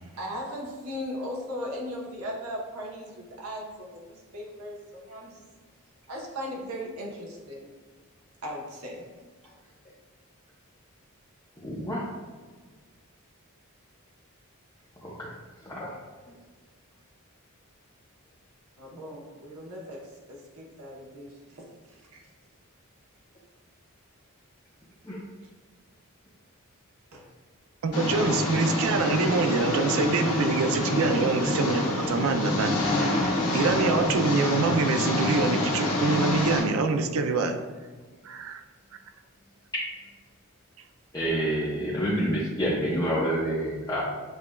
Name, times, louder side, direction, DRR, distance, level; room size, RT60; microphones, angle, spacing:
voice 1, 0.0-5.4 6.1-7.7 8.4-9.1 18.8-21.7 22.1-22.2 27.1-27.3, equal, 85° right, -2 dB, 0.9 m, -38 dB
voice 2, 11.6-12.1 15.0-15.3 15.6-15.9 25.0-25.2 41.1-44.0, equal, 15° left, -8 dB, 0.6 m, -28 dB
voice 3, 27.8-32.8 33.5-37.6 38.2-38.6, right 4 dB, 70° right, 7 dB, 0.4 m, -25 dB
Engine, 27.9-36.6, left 1 dB, 85° left, 1.3 m, -27 dB
6.7 x 2.3 x 2.2 m, 1.4 s
head